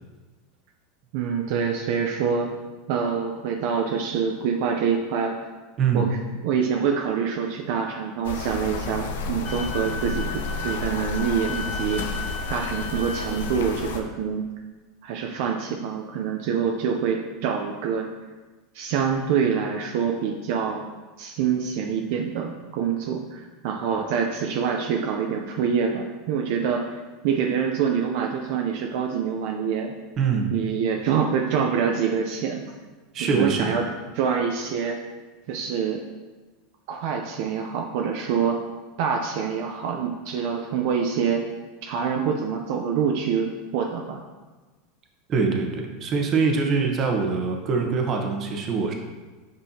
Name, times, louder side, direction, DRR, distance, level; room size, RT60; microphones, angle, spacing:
voice 1, 1.1-2.5 2.9-5.4 5.9-6.2 6.4-12.0 12.5-14.5 15.0-18.1 18.7-20.9 21.2-26.9 27.2-29.9 30.5-32.7 33.2-33.8 34.1-35.0 35.5-36.0 36.9-38.6 39.0-41.5 41.8-44.2, right 6 dB, 65° right, 2 dB, 0.6 m, -26 dB
sound 1, 8.2-14.0, left 3 dB, 90° left, 0.7 m, -31 dB
Wind instrument woodwind instrument, 9.4-13.5, left 4 dB, 20° left, 1.0 m, -35 dB
voice 2, 30.2-30.5 33.1-33.8 45.3-48.9, right 5 dB, 35° right, 3 dB, 1.0 m, -23 dB
7.9 x 5.5 x 2.8 m, 1.3 s
supercardioid pair, 130°, 0 cm